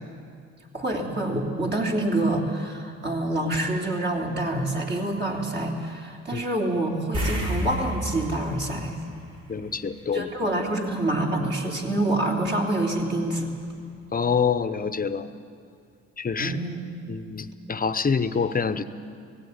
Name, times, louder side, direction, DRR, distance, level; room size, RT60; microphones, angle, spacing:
voice 1, 0.7-9.0 10.1-13.5 16.4-16.8, right 1 dB, 35° right, 0 dB, 3.4 m, -26 dB
sound 1, 7.1-9.9 10.2-10.4 13.3-13.4 13.7-13.8, equal, 60° right, 6.8 m, -30 dB
voice 2, 9.5-10.3 14.1-15.3 16.2-16.5 17.1-18.8, left 6 dB, 30° left, 11 dB, 0.9 m, -26 dB
18.0 x 16.0 x 9.7 m, 2.4 s
cardioid pair, 90°, 30 cm